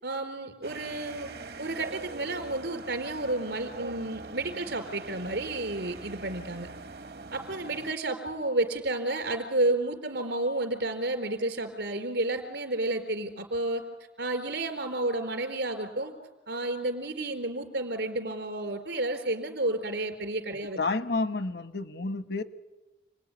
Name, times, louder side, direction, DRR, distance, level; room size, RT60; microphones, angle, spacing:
voice 1, 0.0-1.3 1.6-6.7 7.3-13.8 14.2-16.1 16.5-20.8, right 2 dB, 85° right, 6 dB, 4.0 m, -31 dB
sound 1, 0.6-7.9, right 3 dB, 60° right, 0.8 m, -42 dB
voice 2, 20.8-22.4, left 3 dB, 70° left, 10 dB, 1.2 m, -30 dB
29.5 x 20.5 x 9.8 m, 1.1 s
head